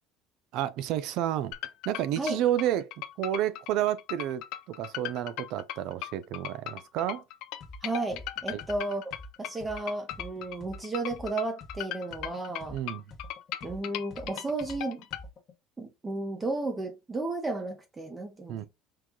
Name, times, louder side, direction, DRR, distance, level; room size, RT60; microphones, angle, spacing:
voice 1, 0.5-1.5 1.9-2.9 3.2-7.2 8.5-8.6 12.7-13.0 18.5-18.7, right 12 dB, 65° right, 0.5 m, -30 dB
sound 1, 1.5-15.2, left 13 dB, 70° left, 0.5 m, -38 dB
sound 2, 7.6-7.8 8.1-11.8 12.1-15.5, left 1 dB, 35° left, 0.9 m, -46 dB
voice 2, 7.8-12.8 13.6-15.0 15.8-18.7, right 2 dB, 15° right, 0.8 m, -33 dB
4.7 x 2.3 x 3.7 m
cardioid pair, 125°, 0 cm